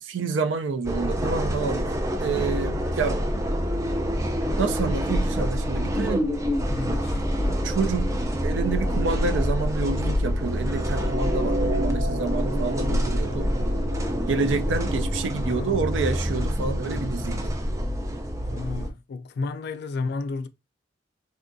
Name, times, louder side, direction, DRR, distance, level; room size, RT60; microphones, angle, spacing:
voice 1, 0.0-1.9 2.2-3.2 4.6-6.3 7.6-8.1 8.4-13.5 14.3-17.6, right 4 dB, 75° right, 0.4 m, -28 dB
sound 1, 0.8-18.9, equal, 15° right, 0.4 m, -26 dB
voice 2, 6.7-7.2 15.4-15.9 18.4-20.5, left 3 dB, 60° left, 0.3 m, -32 dB
sound 2, 10.7-16.9, right 1 dB, 45° right, 0.8 m, -34 dB
3.5 x 2.3 x 2.6 m
head